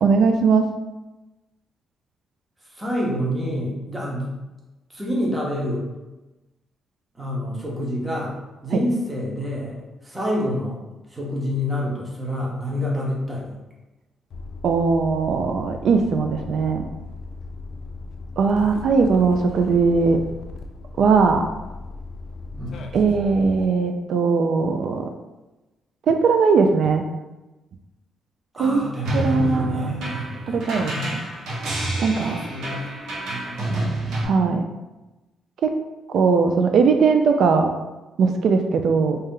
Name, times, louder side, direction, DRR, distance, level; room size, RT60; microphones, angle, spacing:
voice 1, 0.0-0.7 8.7-8.8 14.6-16.8 18.4-20.2 21.0-21.5 22.9-25.1 26.1-27.0 28.6-28.9 29.1-30.1 30.5-31.2 32.0-32.4 34.2-34.6 35.6-35.7 36.1-37.7 38.2-39.2, right 5 dB, 60° right, 5 dB, 0.3 m, -19 dB
voice 2, 2.7-4.4 4.9-5.9 7.1-8.4 8.6-10.8 11.1-13.6 22.5-22.8 28.5-31.1 32.1-32.9 33.3-34.0, left 1 dB, 15° right, -4 dB, 0.9 m, -28 dB
sound 1, 14.3-23.6, left 3 dB, 60° left, 0.4 m, -37 dB
sound 2, 29.0-34.2, right 2 dB, 80° right, 1.0 m, -28 dB
3.2 x 2.7 x 3.6 m, 1.1 s
cardioid pair, 150°, 0 cm